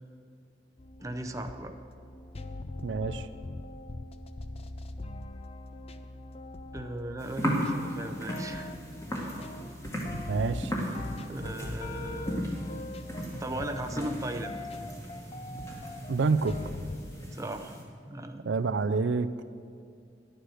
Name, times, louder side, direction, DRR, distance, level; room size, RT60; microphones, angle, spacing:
sound 1, 0.8-17.0, left 2 dB, 35° left, 0.5 m, -42 dB
voice 1, 1.0-1.7 6.7-8.7 11.3-12.5 13.4-14.6 17.3-17.8 18.0-18.5, right 1 dB, 20° right, 6 dB, 0.6 m, -37 dB
voice 2, 2.8-3.3 10.1-10.8 16.1-16.6 18.4-19.4, right 4 dB, 85° right, 12 dB, 0.5 m, -28 dB
sound 2, 7.2-17.8, equal, 15° left, 1.9 m, -36 dB
11.5 x 9.2 x 6.3 m, 2.3 s
head